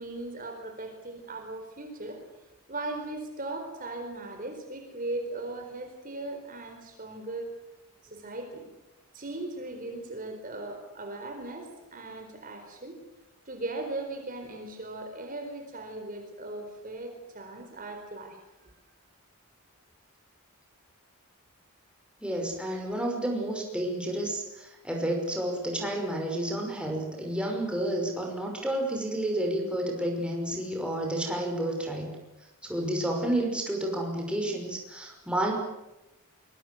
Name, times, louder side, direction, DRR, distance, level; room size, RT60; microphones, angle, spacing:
voice 1, 0.0-2.2 2.7-7.5 8.0-8.7 9.1-13.0 13.5-18.7, right 2 dB, 40° right, 5 dB, 4.3 m, -38 dB
voice 2, 22.2-32.1 32.6-35.5, right 1 dB, 5° right, 1 dB, 5.6 m, -30 dB
24.5 x 22.5 x 7.8 m, 0.96 s
head